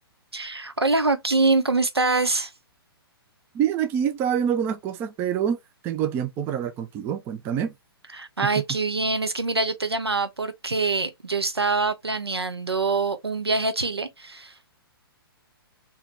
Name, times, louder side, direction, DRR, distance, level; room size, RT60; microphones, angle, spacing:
voice 1, 0.3-2.5 8.1-14.5, right 3 dB, 85° right, 0.7 m, -24 dB
voice 2, 3.5-5.6 5.8-7.7, right 9 dB, 15° right, 0.4 m, -26 dB
3.5 x 2.9 x 3.2 m
figure-of-eight pair, 120°, 13 cm